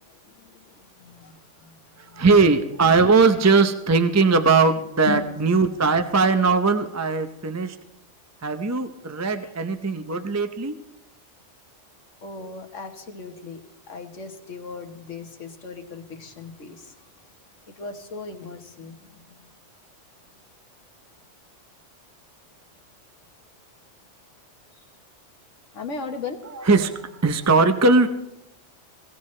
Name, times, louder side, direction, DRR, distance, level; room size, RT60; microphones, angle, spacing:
voice 1, 0.0-2.3 5.1-5.3 9.4-9.5 12.2-16.9 17.7-19.5 25.7-26.4, left 5 dB, 80° left, 5 dB, 1.7 m, -37 dB
voice 2, 2.1-7.8 8.4-10.8 26.6-28.1, right 4 dB, 20° right, 8 dB, 0.5 m, -19 dB
21.5 x 17.0 x 3.2 m, 0.87 s
omnidirectional pair, 1.2 m